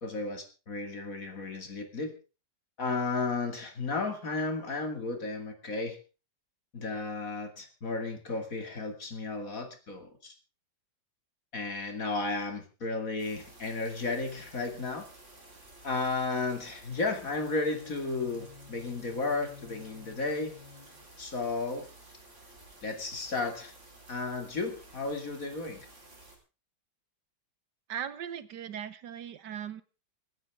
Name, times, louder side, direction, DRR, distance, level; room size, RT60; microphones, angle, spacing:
voice 1, 0.0-2.1 2.8-6.0 6.7-10.3 11.5-15.1 15.8-20.5 21.2-21.9 22.8-23.7 24.1-25.9, left 3 dB, 50° left, 5 dB, 2.8 m, -33 dB
sound 1, 13.2-26.4, right 2 dB, 40° right, 4.4 m, -54 dB
Bowed string instrument, 17.1-21.3, left 4 dB, 85° left, 2.5 m, -53 dB
voice 2, 27.9-29.8, right 9 dB, 70° right, 14 dB, 1.5 m, -38 dB
26.0 x 9.7 x 3.6 m, 0.33 s
omnidirectional pair, 1.9 m